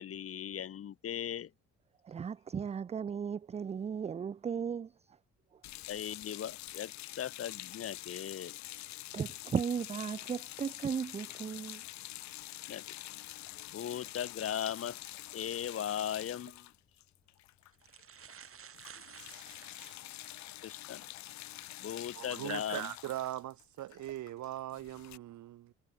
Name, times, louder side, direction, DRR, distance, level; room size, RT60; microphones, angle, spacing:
voice 1, 0.0-1.5 5.9-8.6 12.7-13.0 13.5-15.0 15.3-16.7 20.6-21.0 21.8-22.9, left 9 dB, 50° left, 1.0 m, -38 dB
voice 2, 2.0-4.9 9.1-11.8, right 7 dB, 25° right, 0.3 m, -36 dB
sound 1, 5.6-18.0 18.3-18.5 18.7-25.2, left 15 dB, 70° left, 0.6 m, -46 dB
sound 2, 16.4-16.6 17.4-17.5 17.7-20.5 21.1-21.2 23.0-23.3 23.9-24.1, right 7 dB, 45° right, 3.1 m, -53 dB
voice 3, 22.1-25.7, right 14 dB, 70° right, 1.0 m, -40 dB
cardioid pair, 90°, 30 cm